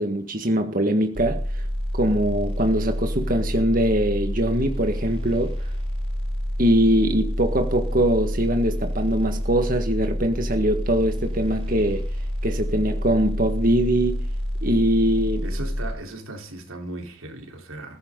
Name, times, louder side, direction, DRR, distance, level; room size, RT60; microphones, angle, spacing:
voice 1, 0.0-1.7 1.9-5.7 6.6-12.0 12.4-14.2 14.6-15.4, right 1 dB, 40° right, 1.7 m, -22 dB
sound 1, 1.1-15.9, equal, 25° right, 7.7 m, -28 dB
voice 2, 15.4-18.0, right 2 dB, 85° right, 4.0 m, -37 dB
21.5 x 15.0 x 3.9 m
head